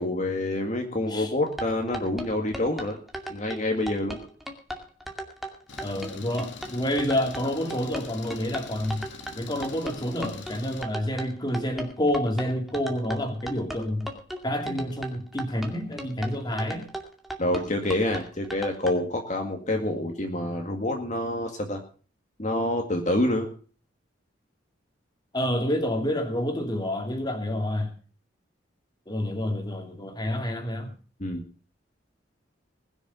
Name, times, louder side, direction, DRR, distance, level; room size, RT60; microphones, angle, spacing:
voice 1, 0.0-3.0 3.3-4.3 17.4-21.8 22.4-23.5 31.2-31.4, left 1 dB, 40° left, 3 dB, 2.1 m, -27 dB
sound 1, 1.5-18.9, right 1 dB, ahead, 2.4 m, -36 dB
Engine, 5.7-10.8, left 4 dB, 80° left, 2.0 m, -44 dB
voice 2, 5.8-9.1 9.4-14.1 14.4-16.9 25.3-27.9 29.1-30.9, left 1 dB, 20° left, 5 dB, 2.7 m, -28 dB
20.5 x 7.1 x 6.9 m, 0.39 s
head